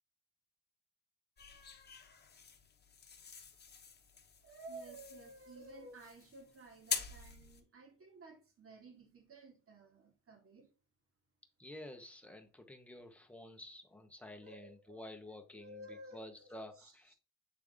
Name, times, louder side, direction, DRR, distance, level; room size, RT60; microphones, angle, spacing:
sound 1, 1.4-7.6, left 6 dB, 30° left, 1.2 m, -46 dB
voice 1, 4.4-10.7 14.4-15.1 15.5-17.1, right 2 dB, 40° right, 2.0 m, -54 dB
voice 2, 11.6-17.1, left 1 dB, 5° left, 1.0 m, -51 dB
7.7 x 3.4 x 3.5 m
cardioid pair, 105°, 33 cm